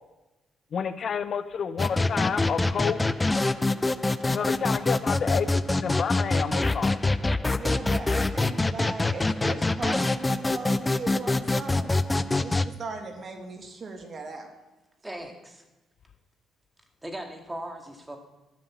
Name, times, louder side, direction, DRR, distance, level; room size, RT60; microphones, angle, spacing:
voice 1, 0.7-3.0 4.3-7.0, left 7 dB, 55° left, 12 dB, 0.7 m, -30 dB
sound 1, 1.8-12.7, left 2 dB, 20° left, 0.4 m, -25 dB
voice 2, 7.5-14.5, right 4 dB, 45° right, 4 dB, 1.7 m, -38 dB
voice 3, 15.0-15.6 17.0-18.2, right 1 dB, 10° right, 3 dB, 2.0 m, -38 dB
12.5 x 5.4 x 7.2 m, 1.1 s
cardioid pair, 90°, 0 cm